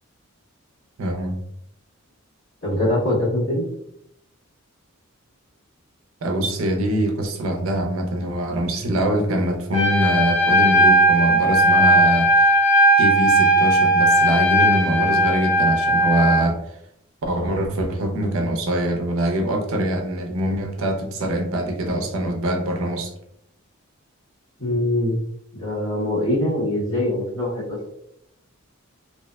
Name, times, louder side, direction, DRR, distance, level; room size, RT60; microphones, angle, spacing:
voice 1, 1.0-1.4 6.2-12.6 13.0-16.6 17.2-23.1, right 1 dB, 75° right, 3 dB, 0.5 m, -23 dB
voice 2, 2.6-3.7 24.6-25.2 25.5-27.8, left 1 dB, 70° left, -8 dB, 1.4 m, -23 dB
Trumpet, 9.7-16.4, equal, 30° left, 0.7 m, -17 dB
2.6 x 2.0 x 2.2 m, 0.75 s
head